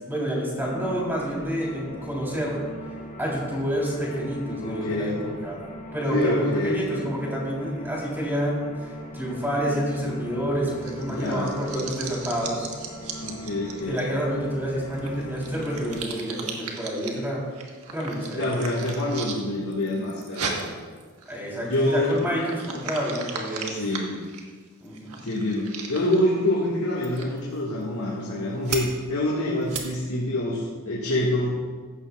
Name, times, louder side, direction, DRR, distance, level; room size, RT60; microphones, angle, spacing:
voice 1, 0.0-2.6 3.2-5.6 5.9-12.7 13.9-17.4 17.9-18.8 21.3-23.7 24.8-25.2, equal, 10° right, -5 dB, 3.5 m, -28 dB
sound 1, 0.6-16.0, equal, 35° left, 1.3 m, -40 dB
voice 2, 4.6-5.2 6.1-6.8 11.1-11.6 13.2-14.1 18.4-20.7 21.7-22.3 23.7-24.2 25.2-31.6, left 1 dB, 70° left, -6 dB, 1.9 m, -26 dB
sound 2, 10.8-14.0 14.9-17.2 17.5-19.4 19.7-26.4 27.0-27.4 27.8-27.9 28.6-28.8 29.6-29.8, right 5 dB, 75° right, 1.5 m, -36 dB
15.5 x 12.0 x 2.4 m, 1.5 s
head